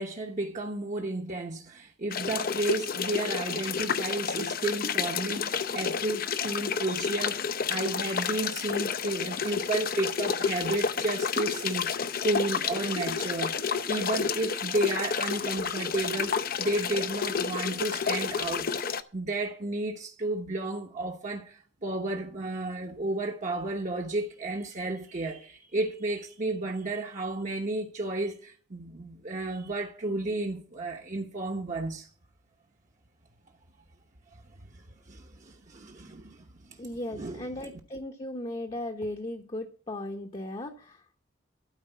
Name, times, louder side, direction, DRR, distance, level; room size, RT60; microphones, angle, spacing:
voice 1, 0.0-18.7 19.1-32.1 34.7-36.8 37.1-37.7, right 2 dB, 40° right, 1.0 m, -32 dB
sound 1, 2.1-19.0, left 6 dB, 50° left, 0.6 m, -30 dB
voice 2, 36.8-41.0, left 1 dB, 30° left, 0.9 m, -36 dB
12.5 x 4.8 x 8.2 m
head